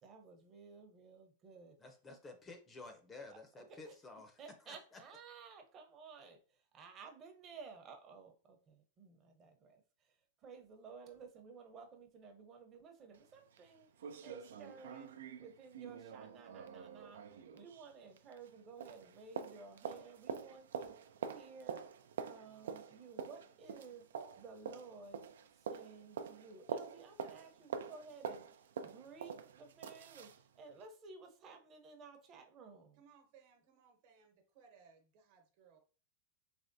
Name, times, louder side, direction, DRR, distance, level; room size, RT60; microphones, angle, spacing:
voice 1, 0.0-1.8 3.3-3.9 4.4-21.0 21.3-25.2 25.5-33.0, right 5 dB, 30° right, 0.8 m, -55 dB
voice 2, 1.8-4.3 4.7-5.0, left 3 dB, 20° left, 0.6 m, -52 dB
sound 1, 13.1-13.2 13.6-13.7 14.0-18.6 18.8-30.4 30.8-30.9, right 7 dB, 85° right, 0.4 m, -46 dB
voice 3, 33.0-35.8, right 6 dB, 55° right, 1.0 m, -64 dB
3.4 x 3.2 x 2.6 m
supercardioid pair, 135°, 0 cm